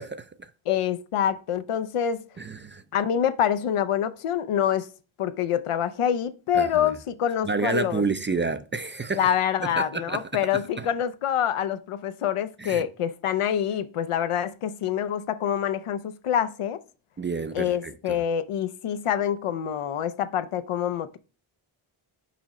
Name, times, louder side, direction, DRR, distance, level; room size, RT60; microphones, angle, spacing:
voice 1, 0.0-0.5 2.4-2.8 6.5-6.9 7.4-9.3 9.6-10.9 12.6-12.8 17.2-18.2, right 4 dB, 25° right, 0.3 m, -30 dB
voice 2, 0.7-2.2 2.9-4.9 5.2-8.0 9.2-16.8 17.5-21.2, left 9 dB, 90° left, 0.7 m, -26 dB
6.0 x 4.8 x 4.1 m
wide cardioid pair, 120°, 50 cm